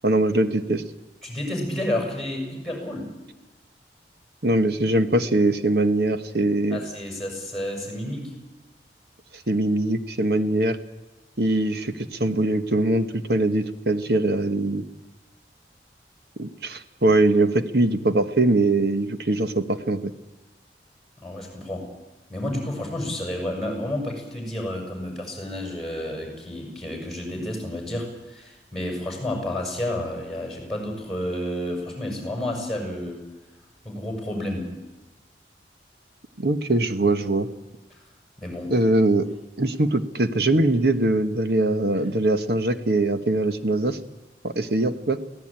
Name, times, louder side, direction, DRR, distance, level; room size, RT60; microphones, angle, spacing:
voice 1, 0.0-0.8 4.4-6.8 9.5-10.8 11.4-14.8 16.4-20.1 36.4-37.5 38.7-39.3 39.6-44.0 44.4-45.2, right 2 dB, 60° right, 9 dB, 1.3 m, -22 dB
voice 2, 1.2-3.1 6.7-8.3 21.2-21.9 22.3-33.2 33.8-34.7 38.4-38.7, left 1 dB, ahead, 1 dB, 6.7 m, -30 dB
23.5 x 16.5 x 9.0 m, 1.1 s
head